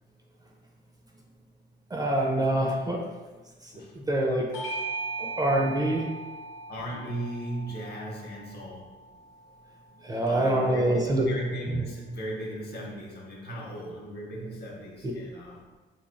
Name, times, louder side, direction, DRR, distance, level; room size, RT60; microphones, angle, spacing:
voice 1, 1.9-3.0 4.0-4.5 5.2-6.0 10.0-11.3, right 1 dB, 20° right, 0 dB, 0.4 m, -25 dB
voice 2, 3.7-4.1 6.7-8.9 10.3-15.6, right 1 dB, 55° left, -2 dB, 0.8 m, -36 dB
Bell / Doorbell, 4.5-9.4, right 3 dB, 85° left, 0.6 m, -38 dB
3.1 x 2.2 x 2.5 m, 1.2 s
cardioid pair, 90°, 20 cm